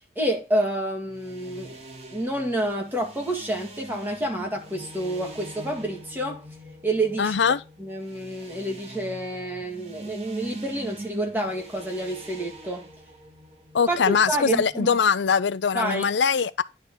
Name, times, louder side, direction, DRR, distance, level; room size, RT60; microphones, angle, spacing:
voice 1, 0.2-1.8 2.1-6.4 6.8-7.4 7.8-12.9 13.9-15.0 15.7-16.1, right 1 dB, 10° right, 2.0 m, -28 dB
sound 1, 1.0-14.7, right 1 dB, 35° right, 1.9 m, -42 dB
voice 2, 7.2-7.6 13.7-16.6, left 6 dB, 85° left, 0.5 m, -22 dB
10.5 x 4.0 x 6.3 m
head